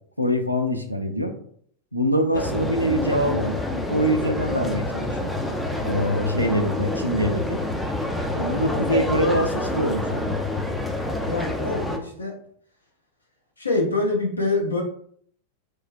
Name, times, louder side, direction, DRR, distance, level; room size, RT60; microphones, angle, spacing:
voice 1, 0.2-1.4 1.9-3.6 3.9-5.3 5.8-7.6 8.3-10.4, equal, 90° right, 4 dB, 0.4 m, -24 dB
sound 1, 2.3-12.0, left 2 dB, 5° left, 0.3 m, -27 dB
voice 2, 11.2-12.3 13.6-14.8, left 2 dB, 80° left, 0 dB, 0.6 m, -25 dB
3.1 x 2.1 x 2.5 m, 0.63 s
figure-of-eight pair, 90°, 0 cm